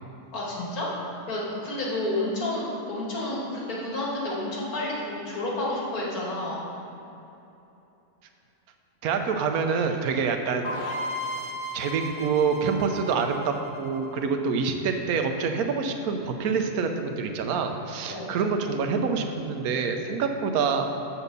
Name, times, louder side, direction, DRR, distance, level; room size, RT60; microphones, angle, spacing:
voice 1, 0.3-0.9 1.3-6.6 18.1-18.3, left 1 dB, 85° left, -5 dB, 2.1 m, -30 dB
voice 2, 9.0-10.7 11.7-20.9, right 5 dB, 85° right, 5 dB, 1.1 m, -26 dB
sound 1, 10.6-14.4, equal, 35° left, 1.0 m, -35 dB
7.0 x 4.3 x 6.6 m, 2.9 s
omnidirectional pair, 1.5 m